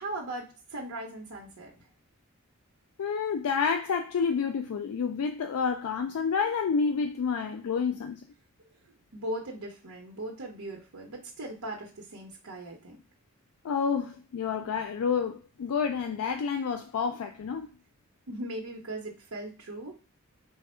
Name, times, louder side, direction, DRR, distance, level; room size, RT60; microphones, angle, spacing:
voice 1, 0.0-1.8 9.1-13.0 18.3-19.9, right 1 dB, 85° right, 0.8 m, -39 dB
voice 2, 3.0-8.2 13.6-17.7, left 6 dB, 75° left, 0.4 m, -29 dB
3.4 x 2.0 x 4.2 m
head